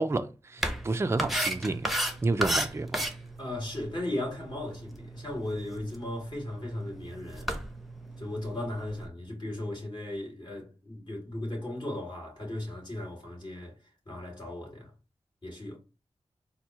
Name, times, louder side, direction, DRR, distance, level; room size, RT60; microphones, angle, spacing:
voice 1, 0.0-1.9 2.2-2.9, right 3 dB, 25° right, 0.4 m, -30 dB
sound 1, 0.6-9.1, right 1 dB, ahead, 0.8 m, -35 dB
voice 2, 3.4-7.5 8.2-13.8 14.1-14.9 15.4-15.8, left 1 dB, 45° left, 2.4 m, -36 dB
4.3 x 2.1 x 4.5 m
wide cardioid pair, 70°, 11 cm